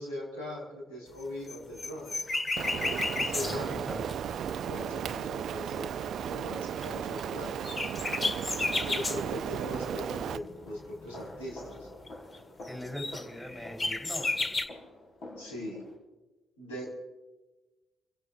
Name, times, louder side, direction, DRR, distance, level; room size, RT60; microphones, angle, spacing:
voice 1, 0.0-2.3 3.0-3.8 4.6-7.7 8.5-11.9 15.4-15.9 16.6-16.9, equal, 80° left, -2 dB, 5.1 m, -40 dB
sound 1, 1.2-5.0 6.8-6.9 7.2-7.3 7.6-9.2 9.8-11.6 11.9-12.1 12.3-12.4 12.7-14.7, left 3 dB, 35° left, 1.4 m, -33 dB
Rain, 2.6-10.4, right 8 dB, 60° right, 0.5 m, -35 dB
voice 2, 3.2-4.1 12.7-14.4, equal, 5° left, 3 dB, 4.2 m, -41 dB
sound 2, 9.6-16.0, left 1 dB, 60° left, 6.8 m, -48 dB
29.0 x 16.5 x 2.6 m, 1.1 s
hypercardioid pair, 45°, 0 cm